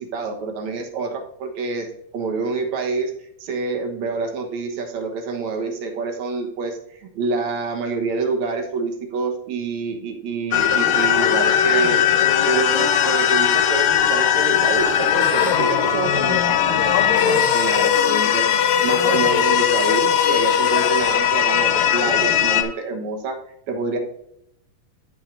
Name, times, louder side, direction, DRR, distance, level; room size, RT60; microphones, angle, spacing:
voice 1, 0.0-1.9 2.1-3.1 3.4-12.0 12.4-18.5 18.8-23.4 23.7-24.0, right 4 dB, 70° right, 4 dB, 2.5 m, -27 dB
sound 1, 10.5-22.6, left 9 dB, 75° left, 2.0 m, -18 dB
13.0 x 6.4 x 2.6 m, 0.77 s
omnidirectional pair, 3.5 m